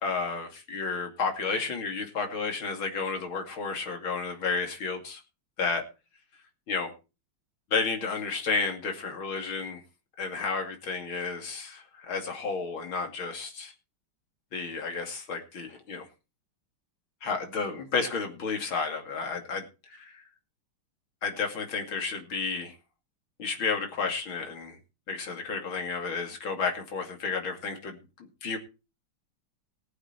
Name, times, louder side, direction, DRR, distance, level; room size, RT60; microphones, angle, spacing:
voice 1, 0.0-5.2 5.6-5.8 6.7-6.9 7.7-9.8 10.2-13.7 14.5-16.0 17.2-20.2 21.2-22.7 23.4-24.8 25.1-28.6, left 4 dB, 70° left, 4 dB, 3.3 m, -32 dB
19.5 x 7.9 x 4.5 m, 0.31 s
omnidirectional pair, 2.3 m